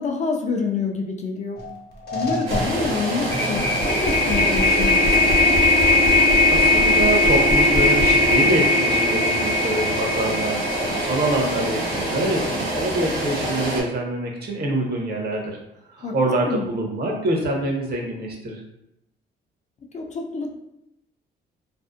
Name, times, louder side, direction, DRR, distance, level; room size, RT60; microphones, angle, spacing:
voice 1, 0.0-1.7 2.1-5.5 16.0-16.2 16.4-16.7 19.9-20.6, left 4 dB, 35° left, 2 dB, 0.4 m, -27 dB
sound 1, 1.6-1.7 2.0-12.3, left 2 dB, 55° left, 0.8 m, -20 dB
sound 2, 2.5-13.8, right 1 dB, 90° right, 1.1 m, -27 dB
voice 2, 6.5-15.6 15.9-18.6, right 1 dB, 55° right, 0 dB, 0.7 m, -25 dB
2.6 x 2.0 x 2.4 m, 0.83 s
cardioid pair, 90°, 20 cm